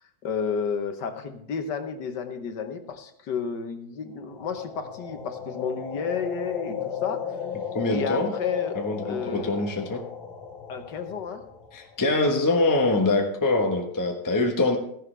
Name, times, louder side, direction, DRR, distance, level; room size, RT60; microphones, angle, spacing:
voice 1, 0.2-7.4 7.9-8.8 9.0-9.6 10.7-11.4, left 6 dB, 70° left, 7 dB, 1.7 m, -31 dB
sound 1, 4.2-12.2, left 7 dB, 50° left, 2.4 m, -36 dB
voice 2, 7.7-8.3 8.8-10.0 11.7-14.8, left 2 dB, 15° left, 2 dB, 1.0 m, -24 dB
14.5 x 11.0 x 3.4 m, 0.70 s
omnidirectional pair, 2.0 m